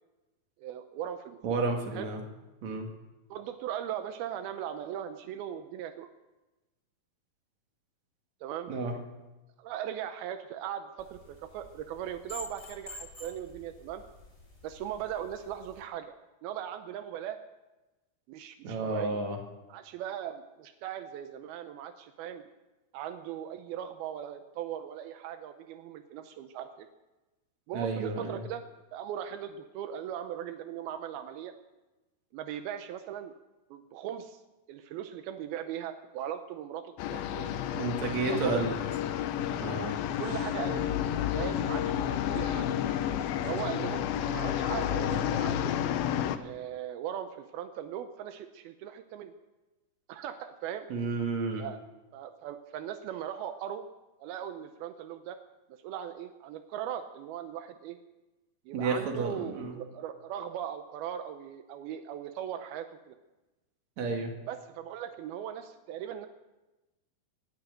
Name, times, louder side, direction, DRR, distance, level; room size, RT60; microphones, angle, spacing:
voice 1, 0.6-1.4 1.9-2.1 3.3-6.1 8.4-8.7 9.6-14.0 14.6-16.1 16.4-17.4 18.3-19.2 19.7-22.4 22.9-26.9 27.7-28.6 28.9-31.5 32.3-33.3 33.7-34.4 34.7-37.5 38.3-38.6 40.2-40.9 41.3-42.7 43.4-45.8 46.4-49.3 50.1-50.9 51.6-51.8 52.1-53.8 54.2-55.4 55.7-58.0 58.7-63.2 64.5-66.3, right 10 dB, 85° right, 8 dB, 2.7 m, -39 dB
voice 2, 1.4-2.2 2.6-2.9 8.7-8.9 18.6-19.4 27.7-28.4 37.7-38.8 39.6-39.9 50.9-51.6 58.7-59.7 64.0-64.3, right 3 dB, 50° right, 2 dB, 3.1 m, -31 dB
sound 1, 11.0-15.8, left 2 dB, 15° left, 4.4 m, -49 dB
sound 2, 37.0-46.4, left 10 dB, 80° left, 2.5 m, -31 dB
19.5 x 9.0 x 7.7 m, 1.1 s
omnidirectional pair, 4.4 m